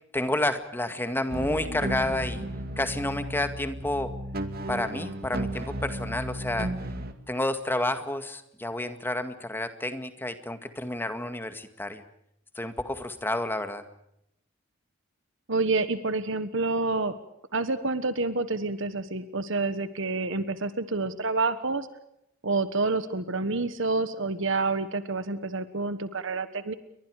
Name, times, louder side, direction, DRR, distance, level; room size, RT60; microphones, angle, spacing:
voice 1, 0.1-2.5 2.8-4.1 4.7-6.7 7.3-12.0 12.6-13.8, left 1 dB, 10° left, 8 dB, 2.0 m, -30 dB
sound 1, 1.3-7.1, right 1 dB, 45° right, 2.3 m, -34 dB
voice 2, 15.5-17.1 17.5-21.9 22.4-26.7, right 3 dB, 65° right, 12 dB, 1.4 m, -28 dB
30.0 x 24.0 x 4.9 m, 0.79 s
head